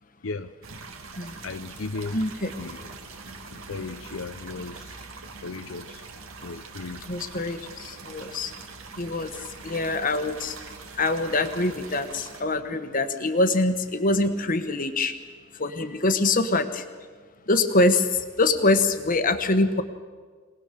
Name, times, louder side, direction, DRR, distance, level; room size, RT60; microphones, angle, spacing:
sound 1, 0.6-12.4, right 4 dB, 80° right, 2.1 m, -43 dB
voice 1, 1.4-2.2 2.6-2.9 3.5-5.1 5.4-6.0 6.4-7.0, left 3 dB, 70° left, 9 dB, 0.6 m, -36 dB
voice 2, 2.1-2.5 7.1-8.5 9.0-9.3 9.6-10.6 11.0-15.1 15.6-16.8 17.5-19.8, left 2 dB, 40° left, 9 dB, 1.2 m, -24 dB
24.0 x 19.0 x 6.8 m, 1.5 s
head